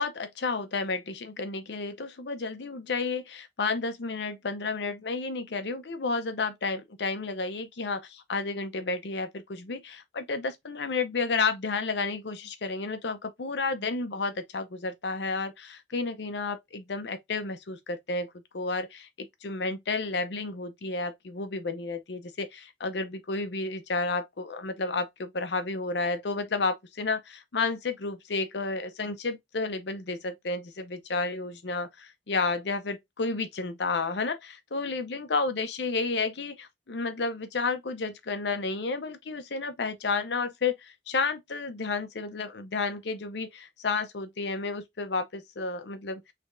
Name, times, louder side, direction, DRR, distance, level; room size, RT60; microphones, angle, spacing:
voice 1, 0.0-46.2, left 3 dB, 70° left, 0.7 m, -31 dB
3.4 x 3.3 x 2.5 m
head